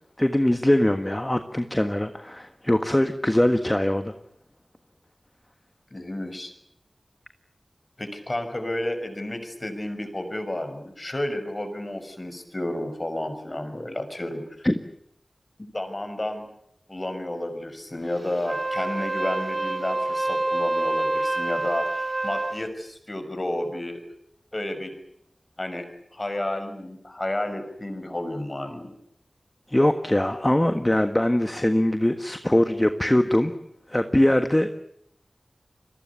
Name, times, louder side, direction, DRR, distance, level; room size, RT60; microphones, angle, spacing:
voice 1, 0.2-4.1 14.6-14.7 29.7-33.5 33.9-34.7, left 1 dB, 15° left, 8 dB, 1.5 m, -22 dB
voice 2, 5.9-6.5 8.0-14.6 15.7-16.4 16.9-24.1 24.5-24.9 25.6-28.9, left 1 dB, 30° left, 8 dB, 5.9 m, -31 dB
Wind instrument woodwind instrument, 18.4-22.6, right 2 dB, 40° right, 1.8 m, -27 dB
29.0 x 23.5 x 7.0 m, 0.72 s
wide cardioid pair, 70°, 0 cm